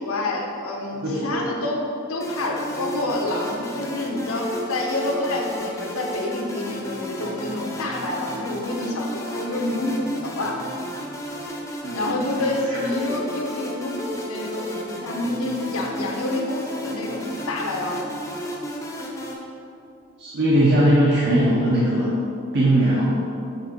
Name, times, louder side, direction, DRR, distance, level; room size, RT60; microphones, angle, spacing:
voice 1, 0.0-1.8 2.1-10.6 11.9-18.0, left 2 dB, 85° left, 0 dB, 1.0 m, -28 dB
voice 2, 1.0-1.4 11.8-12.1 12.7-12.8 20.2-22.2 22.5-23.3, right 1 dB, 50° right, -6 dB, 0.8 m, -20 dB
sound 1, 2.2-19.3, equal, 15° left, 0.6 m, -33 dB
7.1 x 3.7 x 4.5 m, 2.6 s
head